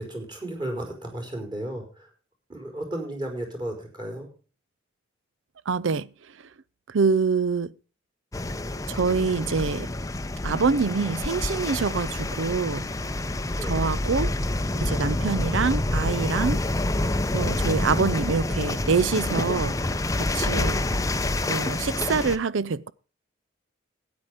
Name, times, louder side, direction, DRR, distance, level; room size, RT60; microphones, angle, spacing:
voice 1, 0.0-2.1 2.5-4.3 13.5-13.9, right 1 dB, 20° right, 4.6 m, -34 dB
voice 2, 5.7-6.1 6.9-7.7 8.9-9.9 10.4-12.8 13.6-14.3 14.7-16.6 17.3-19.8 20.1-20.9 21.5-22.9, right 5 dB, 70° right, 0.5 m, -25 dB
sound 1, 8.3-22.4, left 2 dB, 15° left, 0.7 m, -27 dB
13.0 x 9.6 x 5.0 m
head